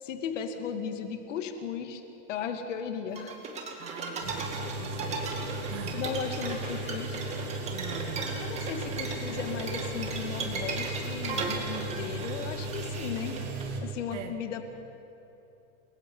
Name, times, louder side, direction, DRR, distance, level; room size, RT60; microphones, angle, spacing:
voice 1, 0.0-2.0 2.3-3.4 5.9-7.2 8.4-13.4 13.8-14.6, left 7 dB, 85° left, 6 dB, 2.3 m, -36 dB
sound 1, 3.2-13.6, right 4 dB, 20° right, 2.2 m, -37 dB
voice 2, 3.8-6.1 7.7-8.5 14.1-14.4, right 9 dB, 75° right, 4 dB, 2.0 m, -43 dB
sound 2, 4.2-13.8, right 2 dB, 55° right, 3.8 m, -36 dB
sound 3, 6.2-11.1, left 4 dB, 20° left, 3.8 m, -54 dB
29.0 x 22.5 x 5.6 m, 2.9 s
supercardioid pair, 175°, 36 cm